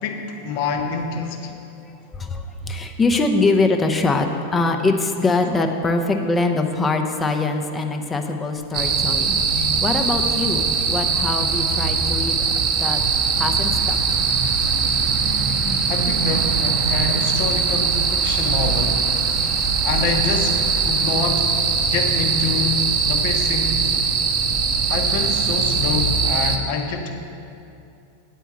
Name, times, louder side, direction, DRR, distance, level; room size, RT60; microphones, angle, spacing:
voice 1, 0.0-1.5 15.9-19.0 19.8-20.6 20.9-21.5 21.9-22.8 23.1-23.8 24.9-27.1, left 5 dB, 45° left, 4 dB, 0.8 m, -26 dB
voice 2, 1.8-12.4 12.8-13.0 13.4-14.0, left 3 dB, 15° left, 4 dB, 0.6 m, -23 dB
sound 1, 8.7-26.6, right 5 dB, 35° right, 0.7 m, -21 dB
9.0 x 4.5 x 7.2 m, 2.6 s
figure-of-eight pair, 90°, 0 cm